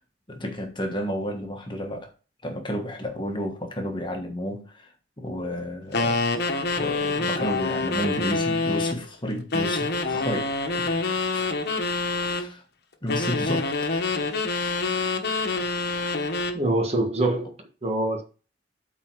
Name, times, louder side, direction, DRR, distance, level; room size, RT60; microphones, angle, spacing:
voice 1, 0.3-2.1 2.4-4.9 5.2-6.2 6.5-11.0 11.3-11.5 12.2-12.6 13.0-13.7, equal, 25° left, 1.3 m, -31 dB
sound 1, 5.9-9.0 9.5-12.5 13.1-16.6, left 3 dB, 60° left, 1.1 m, -26 dB
voice 2, 16.5-17.5 17.8-18.2, right 2 dB, 35° right, 1.5 m, -24 dB
8.3 x 4.2 x 4.7 m
head